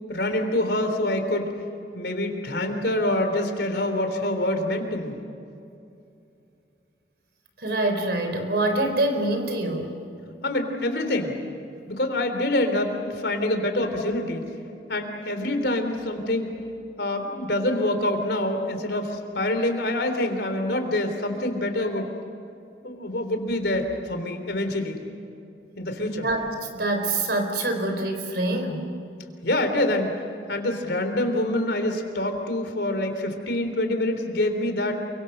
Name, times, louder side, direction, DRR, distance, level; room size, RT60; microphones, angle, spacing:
voice 1, 0.1-1.5 1.9-5.1 10.4-11.4 11.9-14.4 14.9-16.5 17.0-22.1 22.8-25.0 25.8-26.3 29.4-30.1 30.5-35.0, left 1 dB, 70° left, 6 dB, 3.5 m, -26 dB
voice 2, 7.6-9.9 26.2-26.4 26.7-28.9, right 2 dB, 65° right, 5 dB, 4.4 m, -25 dB
29.0 x 24.5 x 6.7 m, 2.6 s
head